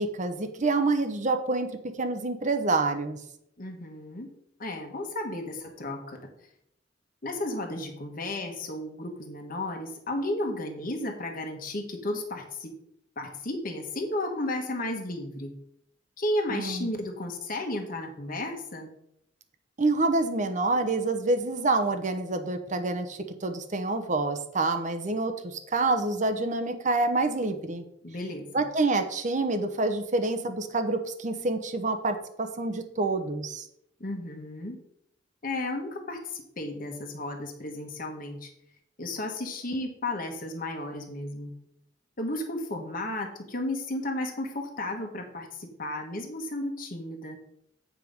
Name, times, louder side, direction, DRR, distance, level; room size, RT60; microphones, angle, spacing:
voice 1, 0.0-1.7 2.0-3.2 16.5-16.9 19.8-27.8 28.5-33.7, right 3 dB, 40° right, 8 dB, 0.9 m, -27 dB
voice 2, 3.6-4.3 4.6-6.2 7.2-12.7 13.2-15.5 16.2-18.9 28.0-28.6 34.0-34.8 35.4-38.5 39.0-41.5 42.2-47.4, left 1 dB, 50° left, 2 dB, 1.3 m, -33 dB
9.0 x 5.0 x 5.3 m, 0.74 s
head